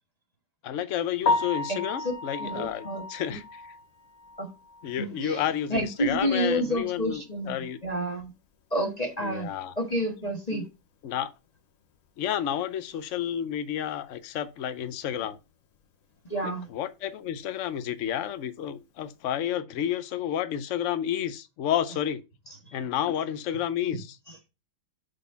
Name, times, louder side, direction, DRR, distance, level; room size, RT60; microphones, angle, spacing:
voice 1, 0.6-3.6 4.8-7.8 9.2-9.7 10.5-10.6 11.0-11.3 12.2-15.4 16.7-22.2 22.7-24.2, left 10 dB, 90° left, 0.6 m, -30 dB
Piano, 1.2-5.2 5.6-5.7 6.2-6.3 6.6-6.7 9.8-9.9 18.4-18.6, left 3 dB, 55° left, 1.0 m, -32 dB
voice 2, 1.7-2.1 2.4-3.4 4.4-4.5 5.0-5.4 5.7-8.3 8.7-9.5 9.8-10.7 16.3-16.7 23.9-24.0 24.3-24.4, right 1 dB, 20° left, 1.3 m, -30 dB
6.5 x 4.1 x 5.6 m
omnidirectional pair, 2.1 m